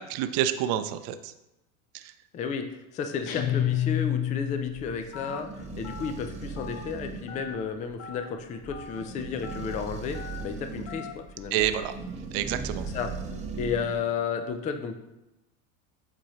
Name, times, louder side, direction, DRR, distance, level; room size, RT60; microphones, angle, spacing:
voice 1, 0.1-1.3 1.9-2.1 11.5-11.9 12.3-12.9, right 11 dB, 55° right, 10 dB, 0.6 m, -28 dB
voice 2, 2.3-2.7 2.9-5.5 5.8-11.7 12.8-13.1 13.6-15.0, left 6 dB, 20° left, 6 dB, 0.4 m, -32 dB
sound 1, 3.3-5.0, left 11 dB, 45° left, 0.9 m, -28 dB
sound 2, 4.4-14.1, right 4 dB, 15° right, 0.8 m, -39 dB
Telephone, 5.1-5.4 5.8-6.1 6.6-6.8 7.3-7.5 8.0-8.3 8.7-9.0 9.4-9.7 10.1-10.4 10.9-11.1, left 6 dB, 85° left, 0.9 m, -42 dB
7.8 x 4.2 x 3.0 m, 0.94 s
supercardioid pair, 120°, 41 cm